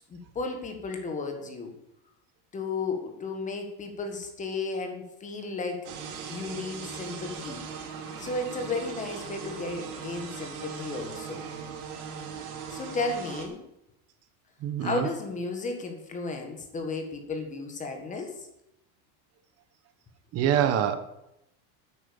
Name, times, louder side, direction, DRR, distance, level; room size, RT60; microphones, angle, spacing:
voice 1, 0.1-1.7 2.5-7.6 8.2-11.4 12.7-13.6 14.8-18.5, left 3 dB, 15° left, 4 dB, 1.7 m, -34 dB
sound 1, 5.8-13.5, right 6 dB, 90° right, 3.2 m, -39 dB
voice 2, 14.6-15.1 20.3-21.0, right 10 dB, 35° right, 10 dB, 1.0 m, -25 dB
10.0 x 9.4 x 7.0 m, 0.84 s
cardioid pair, 175°, 44 cm